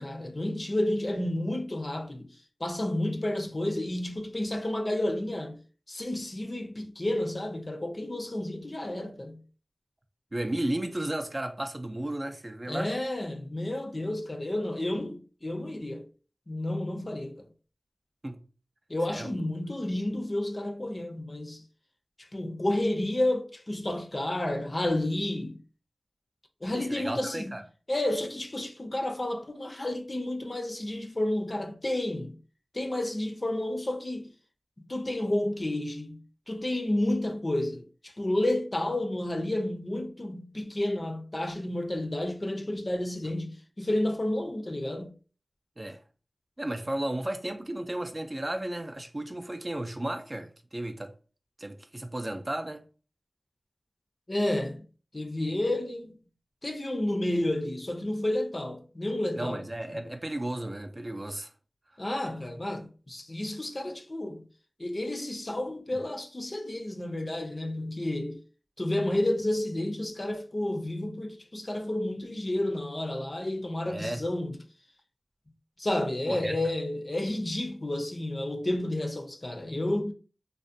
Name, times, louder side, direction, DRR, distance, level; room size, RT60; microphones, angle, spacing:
voice 1, 0.0-2.3 2.6-5.6 5.9-9.4 12.7-16.0 16.5-17.5 18.9-21.6 22.2-25.6 26.6-27.5 27.9-32.4 32.7-34.3 34.8-36.2 36.5-45.1 54.3-54.8 55.1-56.2 56.6-59.6 59.9-60.0 62.0-64.5 64.8-68.4 68.8-74.6 75.8-80.1, left 1 dB, 45° left, 0.5 m, -31 dB
voice 2, 10.3-12.9 18.2-18.4 19.1-19.4 26.7-27.6 45.8-46.0 46.6-51.1 51.6-52.8 59.4-61.5 73.9-74.2 76.3-76.6, right 1 dB, 35° right, 0.3 m, -34 dB
2.4 x 2.1 x 2.5 m
cardioid pair, 40°, 0 cm